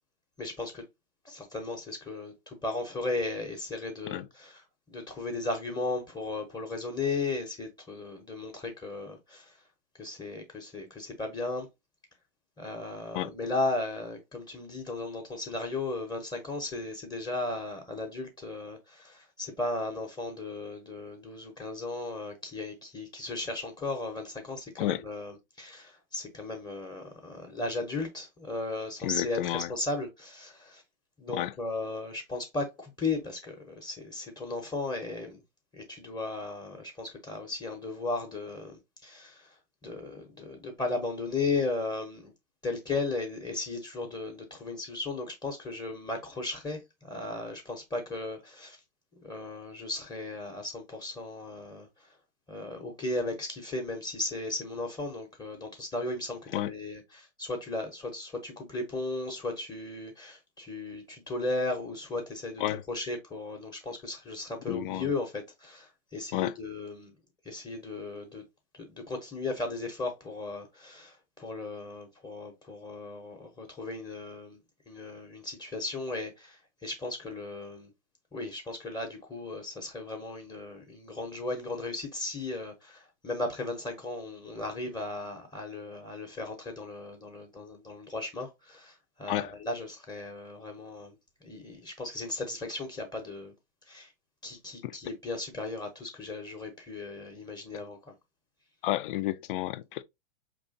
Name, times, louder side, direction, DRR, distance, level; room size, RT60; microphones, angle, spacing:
voice 1, 0.4-0.8 1.2-9.6 10.0-11.7 12.6-30.8 31.2-35.4 35.7-42.3 42.6-48.8 49.1-52.2 52.5-67.1 67.4-68.4 68.7-74.6 74.9-77.9 78.3-91.2 91.4-93.5 93.9-94.1 94.4-98.1, left 2 dB, 15° left, 0.8 m, -36 dB
voice 2, 29.0-29.7 31.3-31.5 56.5-56.7 62.6-62.8 64.7-65.1 66.3-66.5 89.3-89.5 98.8-100.0, left 15 dB, 55° left, 0.5 m, -31 dB
4.4 x 3.0 x 2.7 m
hypercardioid pair, 130°, 31 cm